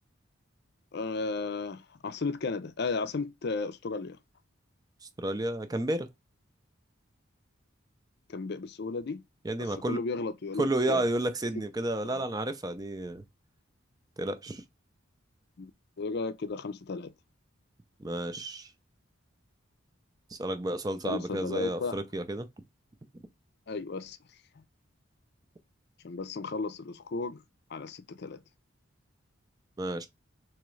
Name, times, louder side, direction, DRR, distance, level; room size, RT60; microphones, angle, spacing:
voice 1, 0.9-4.2 8.3-9.2 9.6-11.0 12.0-12.2 15.6-15.7 16.0-17.1 21.0-22.0 23.7-24.2 26.0-27.4 27.7-28.4, left 4 dB, 55° left, 0.5 m, -34 dB
voice 2, 5.2-6.1 9.4-10.0 10.6-13.2 14.2-14.6 18.0-18.7 20.3-22.5 29.8-30.1, right 1 dB, 20° right, 0.5 m, -31 dB
3.6 x 3.0 x 3.1 m
head